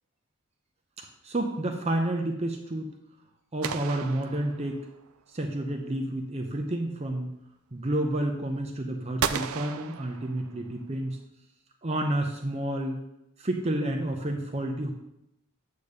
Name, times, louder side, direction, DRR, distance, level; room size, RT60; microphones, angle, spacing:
voice 1, 1.2-2.9 3.5-4.8 5.3-7.3 7.7-11.2 11.8-13.0 13.4-14.9, right 1 dB, 30° right, 3 dB, 0.6 m, -30 dB
sound 1, 3.6-5.1 9.2-10.8, right 7 dB, 85° right, 0.4 m, -34 dB
8.6 x 3.4 x 6.6 m, 0.85 s
head